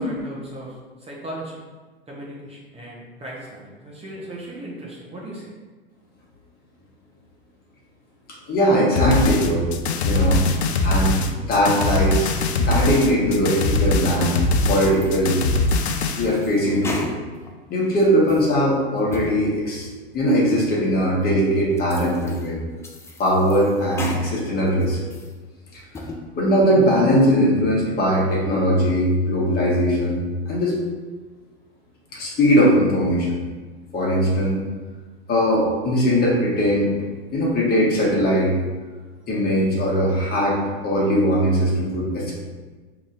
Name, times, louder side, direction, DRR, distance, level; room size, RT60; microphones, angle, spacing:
voice 1, 0.0-1.6 2.1-5.5, right 1 dB, 20° right, -5 dB, 0.8 m, -37 dB
voice 2, 8.5-9.6 10.0-11.2 11.5-12.3 12.6-14.4 14.7-15.4 16.2-17.1 17.7-19.9 20.1-22.6 23.2-25.0 25.7-25.8 26.3-30.7 32.1-33.4 33.9-34.6 35.3-38.5 39.3-40.6 40.8-42.4, equal, 30° left, -4 dB, 1.2 m, -20 dB
sound 1, 9.0-16.3, left 2 dB, 85° left, 0.5 m, -22 dB
sound 2, 14.6-15.2 15.6-17.5 17.9-18.5 19.0-19.4 19.8-19.9 20.5-20.6 21.2-21.3 21.8-22.5 22.8-24.3 24.7-25.3 25.8-26.2, left 2 dB, 10° left, 0.3 m, -36 dB
5.2 x 2.9 x 2.5 m, 1.4 s
hypercardioid pair, 95°, 32 cm